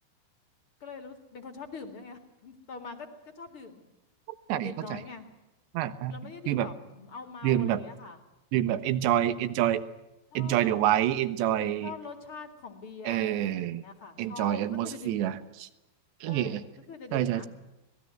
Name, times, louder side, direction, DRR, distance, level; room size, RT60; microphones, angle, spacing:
voice 1, 0.8-3.8 4.5-5.3 6.1-8.2 10.3-11.0 11.8-15.3 16.3-17.5, left 4 dB, 40° left, 6 dB, 2.1 m, -44 dB
voice 2, 4.5-5.0 5.7-6.2 6.5-6.7 7.4-7.8 8.5-9.8 10.3-11.9 13.0-13.8 14.2-15.7 16.2-16.6 17.1-17.4, right 12 dB, 75° right, 13 dB, 3.2 m, -27 dB
26.0 x 19.5 x 7.8 m, 0.97 s
omnidirectional pair, 5.4 m